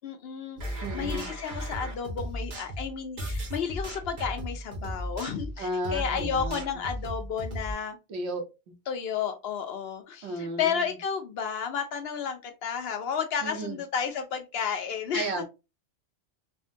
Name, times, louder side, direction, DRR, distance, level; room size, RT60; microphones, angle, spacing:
voice 1, 0.0-8.0 8.9-15.4, left 7 dB, 65° left, 6 dB, 0.7 m, -32 dB
sound 1, 0.6-7.7, equal, 40° right, 0.9 m, -35 dB
voice 2, 0.8-1.3 5.6-6.9 8.1-8.5 10.2-11.0 13.4-13.8 15.1-15.4, right 1 dB, 70° right, 4 dB, 0.9 m, -34 dB
3.5 x 2.1 x 2.5 m, 0.27 s
omnidirectional pair, 1.2 m